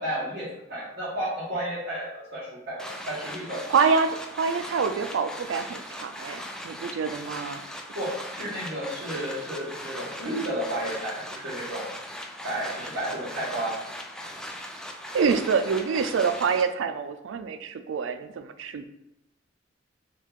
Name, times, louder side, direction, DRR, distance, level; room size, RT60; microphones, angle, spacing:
voice 1, 0.0-3.6 7.9-11.9 12.4-13.7, right 1 dB, 60° right, -10 dB, 1.4 m, -32 dB
sound 1, 2.8-16.6, equal, 5° left, 0.3 m, -39 dB
voice 2, 3.7-7.6 15.1-18.8, right 5 dB, 85° right, 9 dB, 0.4 m, -26 dB
4.5 x 2.4 x 3.6 m, 0.87 s
head